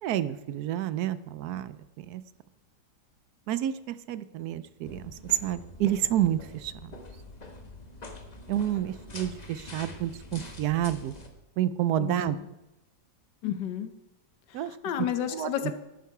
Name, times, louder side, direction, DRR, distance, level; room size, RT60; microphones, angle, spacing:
voice 1, 0.0-1.7 2.0-2.2 3.5-5.1 5.4-6.9 8.5-11.1 11.6-12.4 14.5-14.7 15.3-15.7, right 12 dB, 70° right, 14 dB, 1.0 m, -29 dB
sound 1, 4.9-11.3, left 2 dB, 25° left, 1.1 m, -45 dB
voice 2, 12.0-12.5 13.4-13.9 14.5-15.7, left 10 dB, 75° left, 10 dB, 1.5 m, -32 dB
11.5 x 8.4 x 4.7 m, 0.96 s
omnidirectional pair, 1.9 m